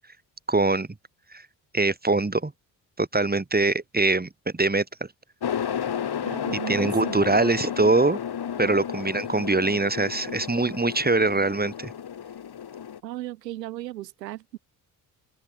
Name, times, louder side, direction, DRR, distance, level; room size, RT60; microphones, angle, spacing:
voice 1, 0.5-0.9 1.3-1.4 1.7-2.5 3.0-5.1 6.7-8.2 8.6-11.9, right 3 dB, 20° right, 6.2 m, -23 dB
sound 1, 5.4-13.0, left 8 dB, 50° left, 7.8 m, -32 dB
voice 2, 6.2-7.4 8.6-8.8 13.0-14.6, right 15 dB, 90° right, 2.7 m, -36 dB
hypercardioid pair, 50°, 48 cm